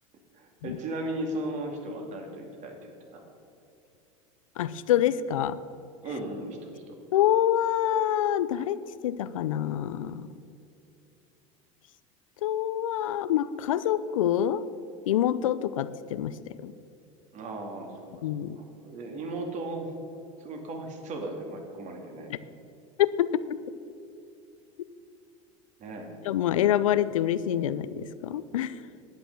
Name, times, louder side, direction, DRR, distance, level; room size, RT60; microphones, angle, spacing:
voice 1, 0.3-3.2 6.0-6.9 17.3-18.3 18.5-19.9 20.4-22.3 25.8-26.1, right 1 dB, 45° right, 3 dB, 2.5 m, -36 dB
voice 2, 4.6-5.6 7.1-8.8 9.0-10.3 12.4-14.7 15.1-16.4 16.6-16.7 18.2-18.6 23.0-23.3 26.2-28.8, left 11 dB, 85° left, 14 dB, 0.4 m, -26 dB
10.5 x 8.8 x 6.8 m, 2.6 s
hypercardioid pair, 95°, 17 cm